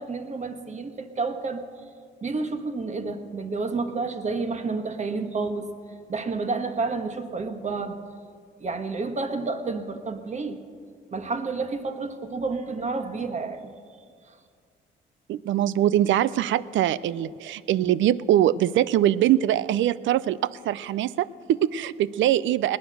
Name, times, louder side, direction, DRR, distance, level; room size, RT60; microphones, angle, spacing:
voice 1, 0.0-1.7 2.2-5.7 6.1-8.0 8.6-10.6 11.1-13.6, right 3 dB, 35° right, 7 dB, 1.4 m, -30 dB
voice 2, 15.3-22.8, right 12 dB, 75° right, 18 dB, 0.5 m, -23 dB
19.5 x 9.4 x 6.4 m, 2.1 s
cardioid pair, 90°, 20 cm